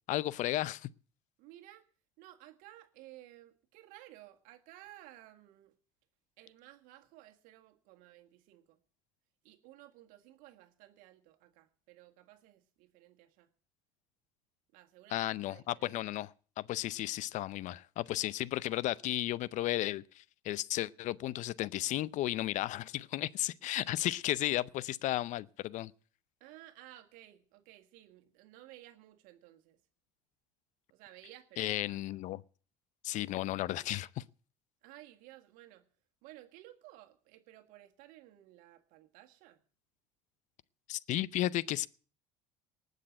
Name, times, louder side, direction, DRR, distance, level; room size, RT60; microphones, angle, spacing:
voice 1, 0.1-0.9 15.1-16.3 16.6-25.9 31.6-32.4 33.0-34.2 40.9-41.9, left 15 dB, 55° left, 0.6 m, -34 dB
voice 2, 1.4-1.9 2.2-5.7 6.4-8.8 9.4-13.5 14.7-15.9 26.4-29.8 30.9-32.2 34.8-35.9 36.2-39.6, right 15 dB, 70° right, 1.7 m, -56 dB
19.0 x 6.7 x 8.7 m
hypercardioid pair, 80°, 15 cm